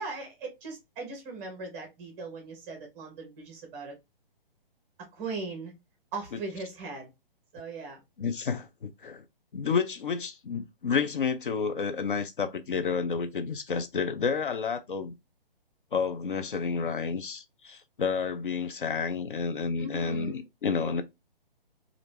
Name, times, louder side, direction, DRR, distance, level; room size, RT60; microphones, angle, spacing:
voice 1, 0.0-4.0 5.1-5.7 6.1-7.1 7.5-8.0 19.8-20.4, right 3 dB, 15° right, 0.7 m, -39 dB
voice 2, 8.2-9.2 9.5-15.1 15.9-21.0, left 5 dB, 60° left, 0.5 m, -30 dB
2.9 x 2.5 x 3.3 m
figure-of-eight pair, 135°, 29 cm